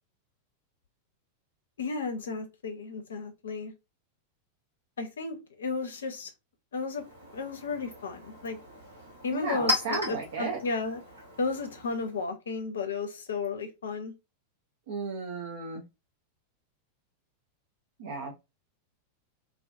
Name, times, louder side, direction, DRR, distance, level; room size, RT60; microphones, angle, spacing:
voice 1, 1.8-3.7 5.0-6.3 6.7-7.0 7.3-8.6 9.2-11.0 11.4-14.1, left 4 dB, 65° left, 0.5 m, -33 dB
Chink clink, 6.7-12.3, left 1 dB, 80° right, 1.0 m, -37 dB
voice 2, 9.3-10.6 14.9-15.8 18.0-18.3, right 4 dB, 55° right, 0.5 m, -34 dB
2.3 x 2.3 x 2.4 m
figure-of-eight pair, 90°, 0 cm